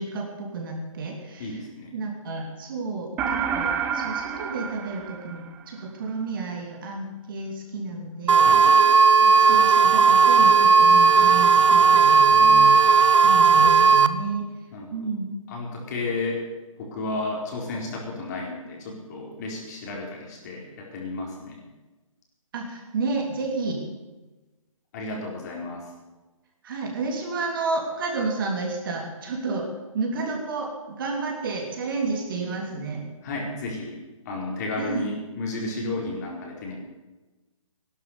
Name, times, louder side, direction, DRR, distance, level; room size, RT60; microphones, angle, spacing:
voice 1, 0.0-1.6 1.9-8.5 9.2-12.8 13.2-14.4 14.9-15.3 22.5-23.8 26.6-33.1 34.8-35.1, right 3 dB, 40° right, 1 dB, 3.4 m, -31 dB
voice 2, 1.4-1.9 8.4-8.8 12.3-12.8 14.7-15.0 15.5-16.4 16.8-21.6 24.9-25.9 33.2-34.0 34.2-36.7, left 2 dB, 30° left, -1 dB, 4.3 m, -33 dB
sound 1, 3.2-5.8, right 7 dB, 10° right, 0.5 m, -29 dB
sound 2, 8.3-14.1, right 5 dB, 60° right, 1.0 m, -15 dB
16.0 x 12.0 x 7.0 m, 1.2 s
figure-of-eight pair, 140°, 18 cm